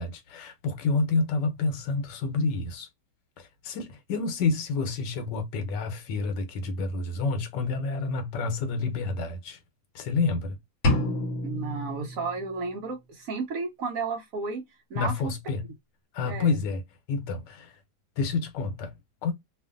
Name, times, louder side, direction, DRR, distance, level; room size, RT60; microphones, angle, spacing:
voice 1, 0.0-2.9 3.4-9.6 9.9-10.6 14.9-15.7 16.1-16.8 17.1-17.7 18.2-18.9 19.2-19.3, left 4 dB, 85° left, 1.3 m, -29 dB
sound 1, 10.8-12.8, left 1 dB, 55° left, 0.9 m, -29 dB
voice 2, 11.4-14.6 14.9-15.3 16.2-16.6, right 4 dB, 65° right, 0.9 m, -33 dB
2.6 x 2.5 x 2.4 m
omnidirectional pair, 1.8 m